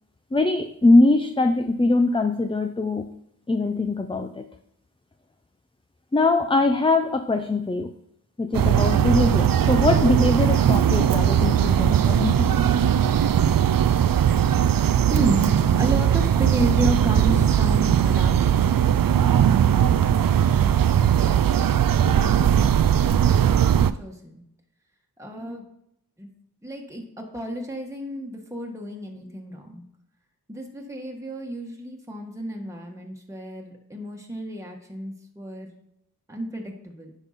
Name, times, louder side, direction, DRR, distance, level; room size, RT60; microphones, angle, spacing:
voice 1, 0.3-3.1 3.5-4.4 6.1-7.9 8.4-12.6, left 2 dB, 15° left, 7 dB, 0.5 m, -22 dB
sound 1, 8.5-23.9, right 9 dB, 60° right, 0.5 m, -19 dB
voice 2, 15.1-19.1 19.4-21.5 22.1-24.4 25.2-25.7 26.2-26.3 26.6-29.8 30.5-35.7 36.3-37.1, equal, 10° right, 0 dB, 1.4 m, -33 dB
10.0 x 5.4 x 4.2 m, 0.77 s
wide cardioid pair, 65°, 38 cm